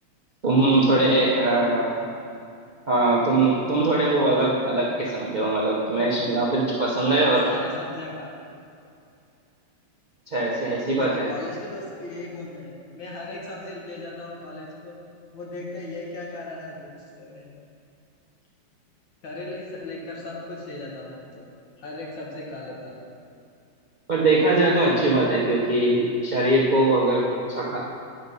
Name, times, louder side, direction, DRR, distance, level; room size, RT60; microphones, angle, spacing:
voice 1, 0.4-1.8 2.9-7.4 10.3-11.3 24.1-27.8, right 2 dB, 40° right, -5 dB, 0.6 m, -21 dB
voice 2, 1.4-1.8 7.1-8.3 10.8-15.0 15.3-17.5 19.2-21.5 21.8-23.0, left 2 dB, 75° left, -3 dB, 2.2 m, -37 dB
10.0 x 5.1 x 5.4 m, 2.5 s
omnidirectional pair, 2.1 m